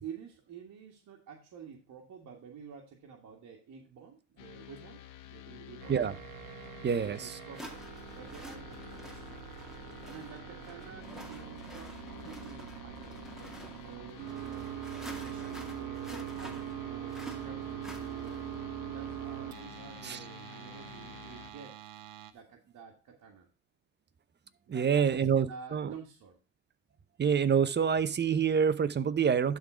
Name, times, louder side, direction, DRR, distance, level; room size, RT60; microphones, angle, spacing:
voice 1, 0.0-5.0 5.3-6.0 7.0-7.8 8.1-9.4 10.1-14.7 15.2-18.5 18.9-21.8 22.3-23.5 24.7-26.4, right 7 dB, 55° right, 0 dB, 1.9 m, -49 dB
sound 1, 4.4-21.5, left 11 dB, 65° left, 1.5 m, -50 dB
sound 2, 5.8-22.3, right 12 dB, 75° right, 1.0 m, -43 dB
sound 3, 6.6-6.7 7.5-18.6, equal, ahead, 2.2 m, -49 dB
voice 2, 6.8-7.4 20.0-20.2 24.7-25.9 27.2-29.6, right 7 dB, 30° right, 15 dB, 0.8 m, -27 dB
11.5 x 3.9 x 4.9 m, 0.30 s
supercardioid pair, 80°, 35 cm